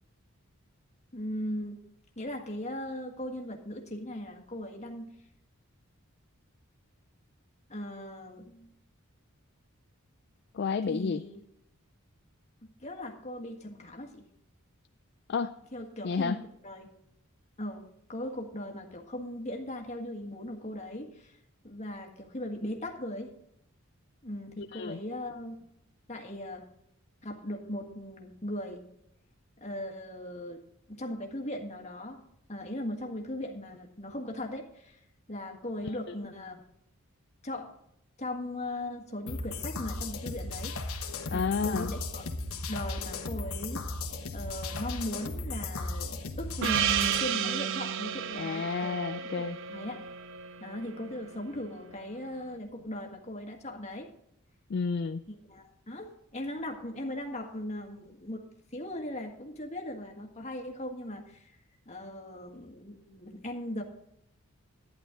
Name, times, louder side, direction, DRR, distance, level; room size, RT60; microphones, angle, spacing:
voice 1, 1.1-1.8 2.2-5.1 7.7-8.7 10.9-11.4 12.6-14.2 15.7-16.4 16.6-16.9 17.6-17.8 18.1-21.4 21.6-23.3 24.2-25.7 26.1-26.6 27.2-28.9 29.6-30.6 30.9-32.2 32.5-35.0 35.3-36.5 37.4-37.7 38.2-40.9 41.3-42.2 42.5-43.9 44.3-49.3 49.7-50.0 50.4-54.1 55.3-61.5 61.8-63.8, left 1 dB, 30° left, 2 dB, 1.7 m, -38 dB
voice 2, 10.5-11.2 15.3-15.6 16.0-16.4 24.6-25.0 35.8-36.1 41.3-41.9 48.3-49.6 54.7-55.2, left 5 dB, 50° left, 10 dB, 0.4 m, -31 dB
sound 1, 39.3-47.3, left 3 dB, 75° left, 1.2 m, -36 dB
Gong, 46.6-51.4, right 8 dB, 60° right, 0.5 m, -32 dB
12.0 x 10.0 x 3.8 m, 0.77 s
head